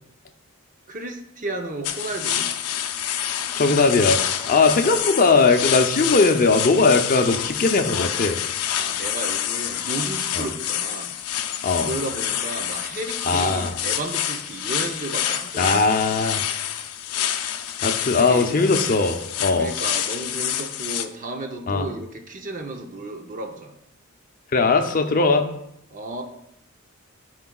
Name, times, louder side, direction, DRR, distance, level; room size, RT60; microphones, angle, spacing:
voice 1, 0.9-2.5 8.7-11.1 11.8-16.5 18.0-18.6 19.6-23.8 25.9-26.2, right 2 dB, 35° right, 4 dB, 0.7 m, -33 dB
sound 1, 1.8-21.1, left 10 dB, 90° left, 0.6 m, -27 dB
voice 2, 3.5-4.2 4.5-8.4 10.4-10.5 11.6-11.9 13.3-13.7 15.6-16.4 17.8-19.7 21.7-21.9 24.5-25.5, left 3 dB, 40° left, 6 dB, 0.6 m, -19 dB
13.5 x 4.6 x 2.3 m, 0.80 s
head